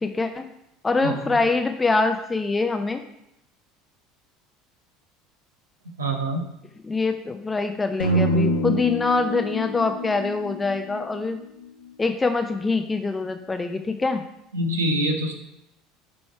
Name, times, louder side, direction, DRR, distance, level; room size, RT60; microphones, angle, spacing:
voice 1, 0.0-0.5 0.8-3.0 6.9-11.4 12.0-14.2, left 3 dB, 20° left, 6 dB, 0.5 m, -24 dB
voice 2, 1.0-1.4 6.0-6.5 14.5-15.3, right 1 dB, 80° right, 4 dB, 1.0 m, -25 dB
sound 1, 8.0-12.1, equal, 85° left, 0.9 m, -26 dB
8.7 x 3.2 x 4.6 m, 0.83 s
figure-of-eight pair, 70°, 0 cm